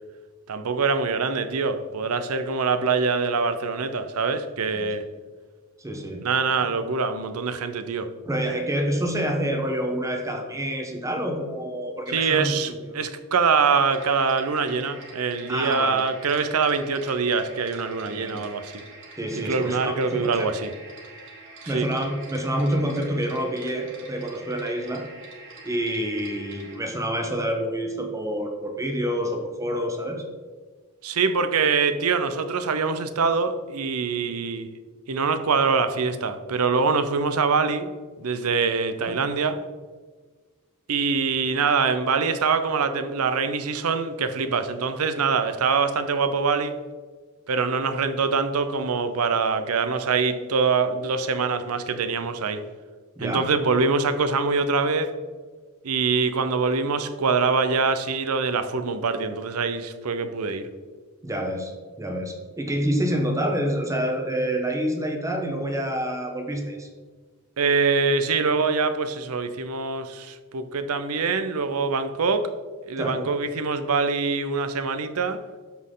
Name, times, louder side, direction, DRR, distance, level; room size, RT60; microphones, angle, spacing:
voice 1, 0.5-5.0 6.2-8.1 12.1-18.7 19.4-20.7 21.7-21.9 31.0-34.7 35.1-37.9 38.2-39.6 40.9-46.8 47.5-52.6 53.2-55.1 55.8-60.7 67.6-72.5 72.9-75.4, right 4 dB, 80° right, 10 dB, 0.6 m, -24 dB
voice 2, 5.8-6.3 6.6-6.7 8.3-13.0 15.5-16.0 18.0-18.5 19.2-20.5 21.7-25.1 25.6-30.2 39.0-39.2 53.2-53.5 61.2-61.7 62.0-66.9 73.0-73.3, equal, 15° right, 3 dB, 1.0 m, -27 dB
sound 1, 13.7-26.8, right 2 dB, 60° right, 1.5 m, -45 dB
12.5 x 4.2 x 3.8 m, 1.4 s
head